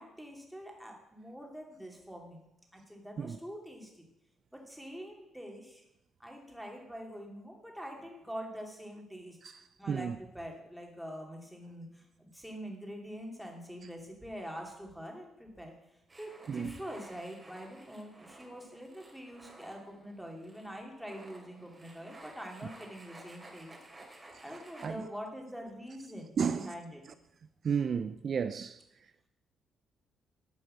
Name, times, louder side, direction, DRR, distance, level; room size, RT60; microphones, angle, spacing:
voice 1, 0.0-2.4 2.7-4.1 4.5-5.8 6.2-9.4 9.8-15.7 16.2-23.7 24.4-27.0, equal, ahead, 2.6 m, -45 dB
voice 2, 9.4-10.2 16.5-16.7 24.0-24.1 24.8-25.0 26.4-26.7 27.6-28.8, right 6 dB, 50° right, 0.4 m, -33 dB
sound 1, 16.1-24.9, right 2 dB, 20° right, 2.7 m, -54 dB
11.5 x 4.5 x 7.6 m
cardioid pair, 90°, 0 cm